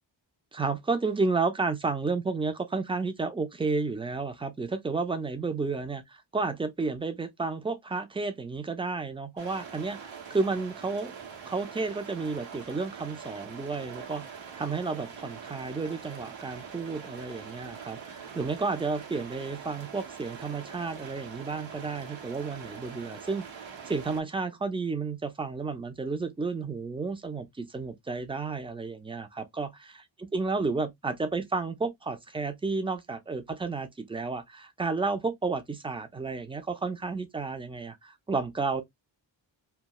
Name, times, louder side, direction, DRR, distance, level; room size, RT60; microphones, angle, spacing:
voice 1, 0.5-11.1 11.5-30.0 30.3-38.8, right 4 dB, 15° right, 0.3 m, -32 dB
sound 1, 9.4-24.2, right 6 dB, 90° right, 1.0 m, -44 dB
2.3 x 2.3 x 2.8 m
wide cardioid pair, 155°, 45 cm